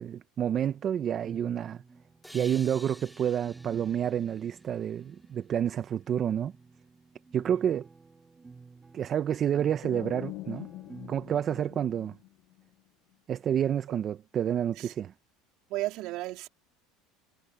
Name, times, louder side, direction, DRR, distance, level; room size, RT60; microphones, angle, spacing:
voice 1, 0.0-1.8 2.3-6.5 7.3-7.9 8.9-10.7 11.1-12.1 13.3-15.1, right 9 dB, 35° right, 0.9 m, -29 dB
sound 1, 1.2-11.4, right 4 dB, 15° right, 2.1 m, -50 dB
sound 2, 2.2-5.7, equal, ahead, 3.7 m, -52 dB
sound 3, 9.8-12.6, left 17 dB, 65° left, 1.0 m, -43 dB
voice 2, 15.7-16.5, right 18 dB, 60° right, 3.8 m, -33 dB
supercardioid pair, 120°, 0 cm